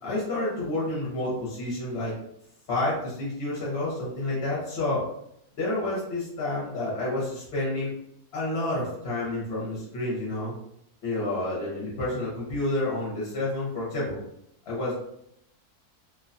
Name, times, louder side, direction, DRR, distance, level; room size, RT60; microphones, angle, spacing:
voice 1, 0.0-2.1 2.7-5.1 5.6-7.9 8.3-10.5 11.0-14.2 14.7-14.9, left 2 dB, 55° left, -6 dB, 0.8 m, -29 dB
2.5 x 2.2 x 2.5 m, 0.76 s
omnidirectional pair, 1.6 m